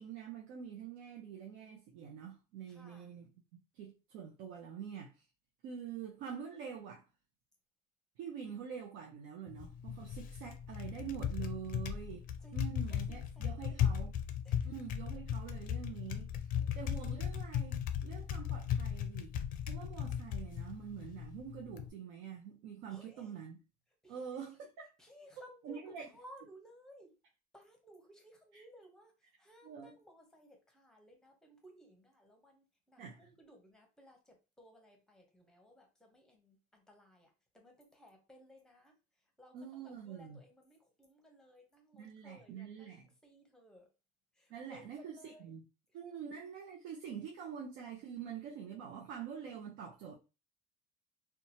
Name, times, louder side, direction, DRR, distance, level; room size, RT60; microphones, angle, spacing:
voice 1, 0.0-3.3 3.7-5.1 5.6-7.0 8.2-12.2 12.5-14.2 14.6-16.3 16.7-19.3 19.7-23.6 24.1-24.7 25.6-26.1 28.5-28.6 29.6-30.0 33.0-33.3 39.5-40.4 41.9-43.1 44.5-45.7 45.9-50.1, right 8 dB, 85° right, 0.6 m, -46 dB
voice 2, 2.7-3.2 12.4-14.1 14.4-14.7 16.5-16.9 22.9-23.4 24.0-24.5 25.0-27.1 27.5-29.1 29.4-38.9 39.4-42.9 43.2-43.9 44.4-45.6, equal, 5° left, 0.7 m, -60 dB
Typing, 9.5-21.9, left 9 dB, 50° left, 0.4 m, -37 dB
2.8 x 2.3 x 2.6 m
cardioid pair, 140°, 18 cm